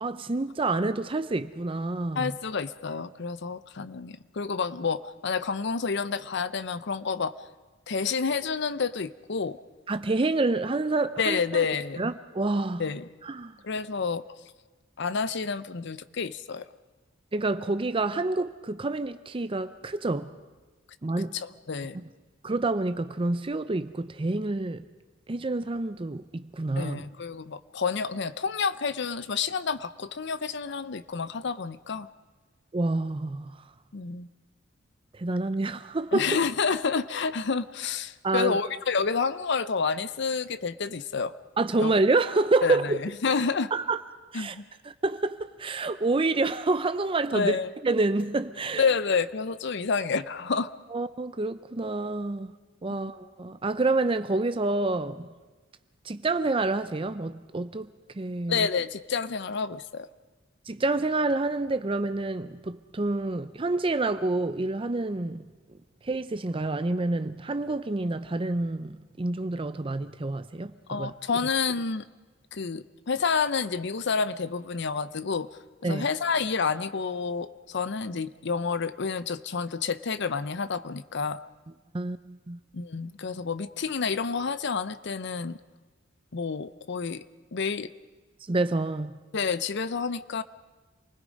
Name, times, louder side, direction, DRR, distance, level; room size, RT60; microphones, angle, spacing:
voice 1, 0.0-2.4 9.9-11.6 12.0-12.8 13.2-13.6 17.3-20.3 21.0-21.4 22.4-24.8 25.3-27.1 32.7-33.6 35.1-36.4 38.2-38.6 41.6-43.0 43.7-44.0 44.3-44.6 44.8-47.6 47.8-48.8 50.9-52.5 52.8-55.3 56.0-57.9 58.1-58.7 60.7-65.4 66.0-70.7 71.0-71.1 75.8-76.1 81.9-82.6 88.5-89.1, right 2 dB, 30° right, 0.6 m, -28 dB
voice 2, 2.2-7.3 7.9-9.6 11.2-12.0 12.8-13.1 13.6-14.2 15.0-16.7 21.3-22.0 26.8-32.1 33.9-34.3 36.1-41.3 41.8-41.9 42.6-43.7 44.3-44.6 47.3-47.7 48.8-50.7 58.5-60.1 70.9-72.0 72.5-75.5 75.8-81.4 82.7-85.6 86.3-87.2 87.5-87.9 89.3-90.4, left 5 dB, 65° left, 0.7 m, -29 dB
28.0 x 20.5 x 5.3 m
head